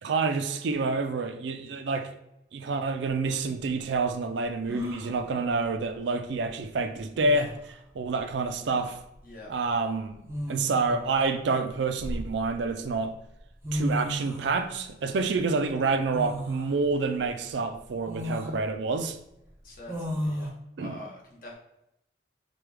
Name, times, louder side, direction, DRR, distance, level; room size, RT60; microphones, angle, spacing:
voice 1, 0.0-2.1 2.5-9.0 9.5-10.2 10.5-13.2 13.7-19.2 20.8-20.9, right 3 dB, 75° right, 0.4 m, -28 dB
sound 1, 4.7-5.2 6.7-6.8 7.2-7.6 9.0-9.2 10.3-11.0 11.7-12.7 13.4-13.5 13.6-14.5 16.1-16.7 17.2-17.3 18.1-18.6 19.9-20.5, equal, 15° right, 0.5 m, -33 dB
voice 2, 19.6-20.5 20.8-21.5, left 1 dB, 50° left, 1.0 m, -44 dB
4.8 x 2.3 x 3.1 m
head